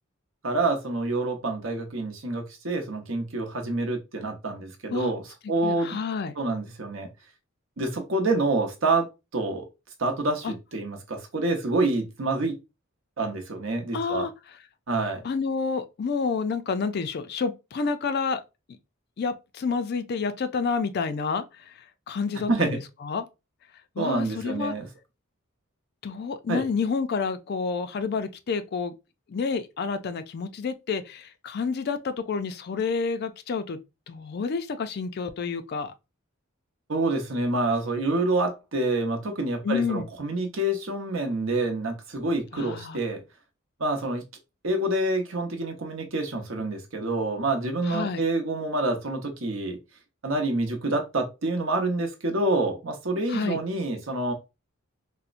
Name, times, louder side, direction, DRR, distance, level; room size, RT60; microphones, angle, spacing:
voice 1, 0.4-6.0 6.4-7.1 7.8-9.1 9.3-9.6 10.0-12.6 13.2-14.3 14.9-15.2 22.5-22.8 24.0-24.9 26.5-26.6 36.9-43.2 43.8-44.2 44.6-49.8 50.2-54.3, right 2 dB, 65° right, 0.8 m, -27 dB
voice 2, 5.6-6.3 10.4-10.5 13.9-14.3 15.2-18.4 19.2-21.6 22.1-23.2 24.0-24.7 26.0-28.9 29.3-33.8 34.1-35.9 39.6-40.1 42.5-43.0 47.9-48.2 53.3-53.6, left 5 dB, 50° left, 0.4 m, -29 dB
4.1 x 2.1 x 2.4 m
head